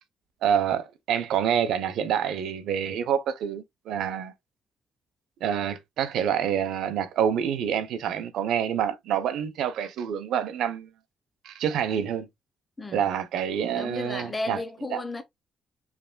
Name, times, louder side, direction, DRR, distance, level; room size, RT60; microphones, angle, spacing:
voice 1, 0.4-4.3 5.4-10.9 11.4-12.3 12.9-14.6 14.9-15.0, right 8 dB, 80° right, 0.7 m, -27 dB
voice 2, 13.7-15.2, left 2 dB, 20° left, 1.0 m, -33 dB
4.9 x 3.3 x 2.2 m
cardioid pair, 90°, 0 cm